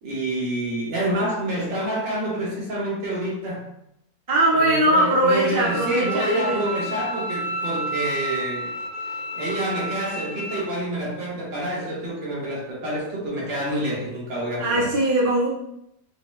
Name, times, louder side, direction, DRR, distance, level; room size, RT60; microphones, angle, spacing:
voice 1, 0.0-3.7 4.5-8.7 9.3-14.9, right 1 dB, 70° right, -4 dB, 1.8 m, -28 dB
voice 2, 4.3-6.6 14.6-15.5, right 1 dB, 25° right, -6 dB, 0.4 m, -20 dB
Bowed string instrument, 5.6-10.6, right 1 dB, 70° left, 0.8 m, -31 dB
5.8 x 2.1 x 3.1 m, 0.79 s
omnidirectional pair, 2.0 m